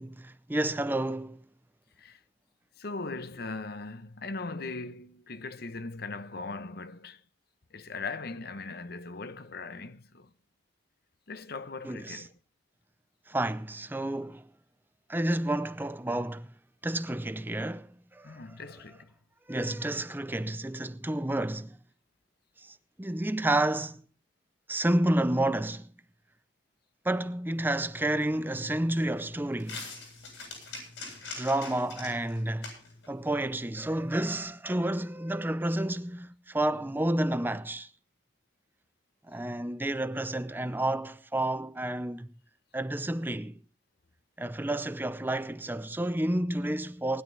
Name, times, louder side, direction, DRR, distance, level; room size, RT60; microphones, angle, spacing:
voice 1, 0.0-1.4 11.8-12.3 13.3-14.5 15.1-16.5 16.8-18.6 19.5-21.8 22.6-24.0 24.7-25.9 27.0-29.9 31.4-32.7 33.1-37.9 39.3-42.3 42.7-43.6 44.4-47.2, right 1 dB, 10° right, 0.6 m, -30 dB
voice 2, 2.8-7.2 7.7-10.3 11.3-12.3 18.2-19.1, left 3 dB, 55° left, 0.9 m, -39 dB
sound 1, 27.5-34.4, left 3 dB, 70° left, 7.9 m, -46 dB
19.5 x 11.0 x 3.9 m
head